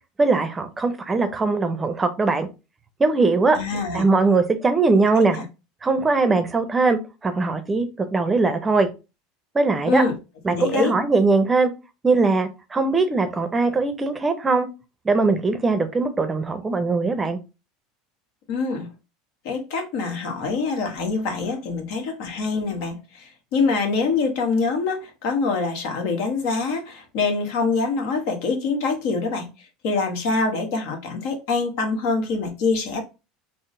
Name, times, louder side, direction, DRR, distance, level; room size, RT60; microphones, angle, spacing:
voice 1, 0.2-2.5 3.0-3.6 3.9-5.4 5.8-8.9 9.5-10.0 10.4-11.7 12.0-14.7 15.0-17.4, right 3 dB, 20° right, 0.6 m, -20 dB
voice 2, 3.5-4.1 5.2-5.4 9.8-10.2 10.5-10.9 18.5-18.9 19.4-29.5 29.8-33.0, left 4 dB, 70° left, 1.0 m, -25 dB
3.7 x 2.0 x 3.6 m
hypercardioid pair, 90°, 0 cm